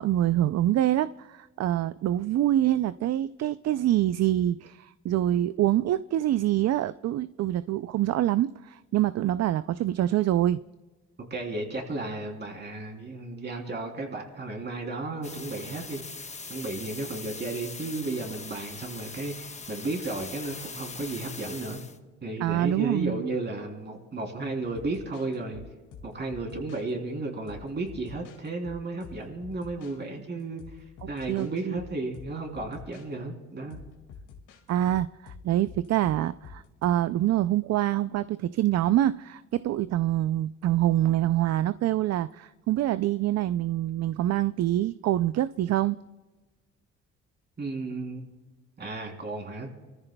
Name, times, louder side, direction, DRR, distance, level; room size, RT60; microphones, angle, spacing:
voice 1, 0.0-10.6 22.4-23.2 31.0-31.8 34.7-46.0, right 13 dB, 60° right, 0.4 m, -25 dB
voice 2, 11.3-16.0 16.5-21.8 22.2-25.6 26.0-30.6 31.1-33.8 47.6-48.3 48.8-49.7, right 2 dB, 35° right, 3.3 m, -34 dB
sound 1, 15.2-22.0, left 4 dB, 20° left, 1.2 m, -41 dB
sound 2, 24.7-26.9 27.5-30.0 30.6-31.5 31.8-33.1 33.7-36.9, left 5 dB, 85° left, 2.2 m, -47 dB
25.0 x 14.5 x 2.3 m
cardioid pair, 90°, 30 cm